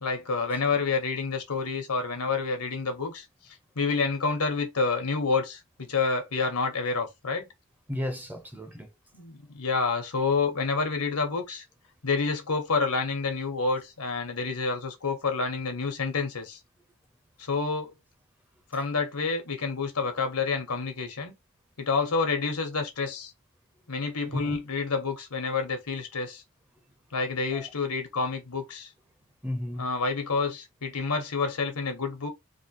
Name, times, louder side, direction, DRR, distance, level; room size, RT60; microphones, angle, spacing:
voice 1, 0.0-3.2 3.8-7.4 9.1-11.6 12.0-16.6 17.4-17.9 18.7-21.3 21.8-23.3 23.9-26.4 27.1-28.9 29.8-32.3, left 4 dB, 85° left, 1.1 m, -28 dB
voice 2, 7.9-8.9 24.3-24.6 27.5-27.7 29.4-29.9, left 1 dB, 10° right, 0.7 m, -33 dB
3.3 x 2.6 x 3.0 m
head